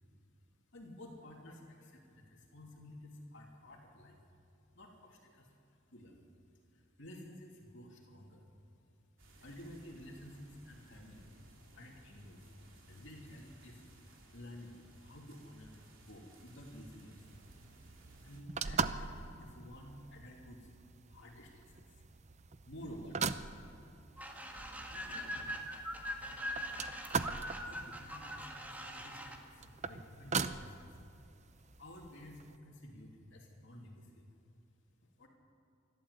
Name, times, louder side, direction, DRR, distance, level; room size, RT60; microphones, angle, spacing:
voice 1, 0.7-4.2 4.7-6.2 6.7-8.4 9.4-11.3 11.7-12.5 12.9-17.4 18.2-20.7 21.1-22.0 22.6-23.2 24.5-25.7 26.2-26.4 27.5-31.0 31.5-34.3 35.0-35.3, left 1 dB, 65° left, 0 dB, 2.9 m, -52 dB
sound 1, 9.2-18.4, right 1 dB, 70° right, 3.4 m, -60 dB
sound 2, 17.2-32.6, right 5 dB, 35° right, 0.6 m, -42 dB
sound 3, 24.2-29.4, equal, 10° right, 1.7 m, -42 dB
27.0 x 12.5 x 8.2 m, 2.7 s
head